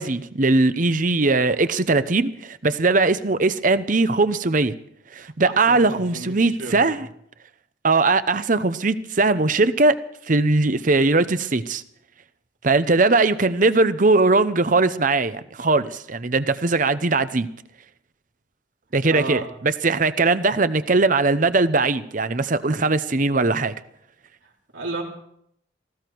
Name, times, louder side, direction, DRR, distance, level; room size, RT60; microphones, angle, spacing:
voice 1, 0.0-4.7 5.1-7.1 7.8-10.0 10.3-11.8 12.6-17.5 18.9-23.7, right 3 dB, 45° right, 13 dB, 0.8 m, -20 dB
voice 2, 5.4-7.0 19.1-19.5 24.4-25.0, right 3 dB, 85° right, -2 dB, 4.3 m, -33 dB
18.5 x 16.0 x 4.7 m, 0.71 s
head